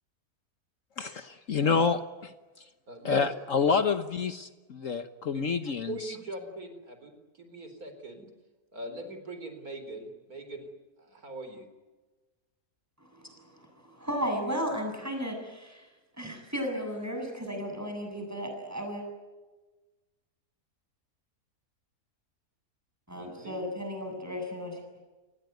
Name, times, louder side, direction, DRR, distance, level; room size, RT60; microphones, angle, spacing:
voice 1, 1.0-2.3 3.0-6.2, left 5 dB, 55° left, 10 dB, 1.4 m, -28 dB
voice 2, 2.9-3.3 5.3-5.5 5.9-8.3 8.7-10.7 11.0-11.7 23.1-23.6, right 2 dB, 65° right, 8 dB, 4.6 m, -41 dB
voice 3, 13.0-15.9 16.2-19.0 23.1-24.8, equal, 10° right, 3 dB, 7.5 m, -35 dB
28.5 x 20.5 x 9.3 m, 1.2 s
omnidirectional pair, 1.7 m